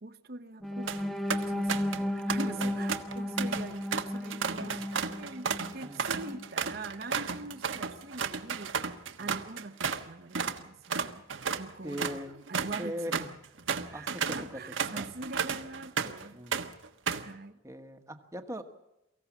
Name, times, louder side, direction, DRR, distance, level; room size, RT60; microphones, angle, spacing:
voice 1, 0.0-4.8 5.2-5.5 5.7-8.7 9.2-11.2 11.6-12.2 12.5-13.3 13.8-16.7 17.1-17.6, right 2 dB, 50° right, 9 dB, 0.9 m, -43 dB
sound 1, 0.6-6.6 7.0-7.2 7.6-7.8, left 1 dB, ahead, 0.8 m, -34 dB
sound 2, 0.6-1.0 1.3-2.0 2.3-10.1 10.3-10.6 10.9-16.2 16.5-17.3, right 6 dB, 80° right, 1.3 m, -33 dB
voice 2, 1.9-2.7 4.5-4.9 5.8-6.1 9.2-9.4 11.8-12.5 12.8-13.3 13.9-14.6 14.9-15.1 16.3-16.7 17.6-18.6, equal, 15° right, 6 dB, 1.3 m, -41 dB
23.5 x 15.5 x 7.3 m, 0.90 s
head